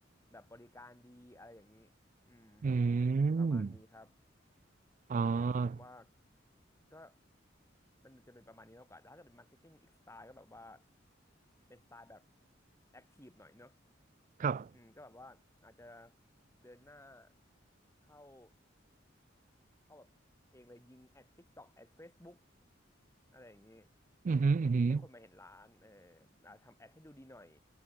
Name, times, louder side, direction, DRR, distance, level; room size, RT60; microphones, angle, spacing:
voice 1, 0.3-1.9 2.3-2.7 3.4-4.2 5.3-6.1 6.9-7.2 8.0-10.8 11.7-12.3 12.9-13.8 14.7-16.1 16.6-17.3 18.0-18.5 19.9-20.1 20.5-22.4 23.3-23.9 24.9-27.6, left 1 dB, 15° left, 3.9 m, -56 dB
voice 2, 2.6-3.7 5.1-5.8 14.4-14.7 24.2-25.0, right 4 dB, 40° right, 0.3 m, -29 dB
head